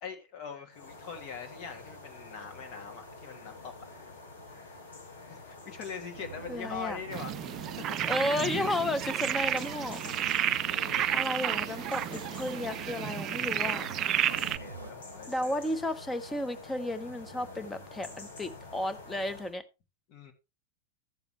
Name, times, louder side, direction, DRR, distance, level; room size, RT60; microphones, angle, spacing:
voice 1, 0.0-3.7 5.3-8.1 10.6-11.2 13.5-13.9 14.3-15.8 20.1-20.3, left 6 dB, 40° left, 5 dB, 2.0 m, -43 dB
sound 1, 0.7-19.6, left 3 dB, 65° left, 2.5 m, -47 dB
sound 2, 6.1-14.9, right 5 dB, 75° right, 0.7 m, -46 dB
voice 2, 6.5-7.0 8.0-10.1 11.1-13.8 15.3-19.6, left 1 dB, 10° left, 12 dB, 1.0 m, -33 dB
sound 3, 7.1-14.6, right 11 dB, 30° right, 0.4 m, -31 dB
14.0 x 7.0 x 3.1 m, 0.27 s
figure-of-eight pair, 90°, 0 cm